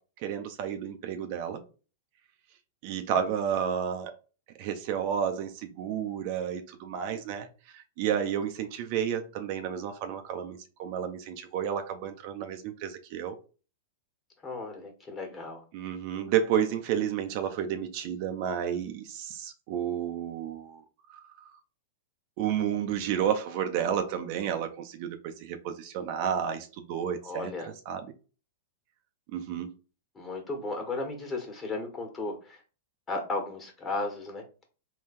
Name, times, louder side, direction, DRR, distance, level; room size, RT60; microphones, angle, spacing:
voice 1, 0.2-1.6 2.8-4.2 4.6-13.4 15.7-20.8 21.1-21.5 22.4-28.1 29.3-29.7, right 8 dB, 50° right, 0.6 m, -31 dB
voice 2, 14.4-15.6 27.2-27.7 30.1-32.6 33.1-34.4, left 2 dB, 20° left, 1.5 m, -35 dB
3.7 x 2.3 x 4.2 m
hypercardioid pair, 110°, 0 cm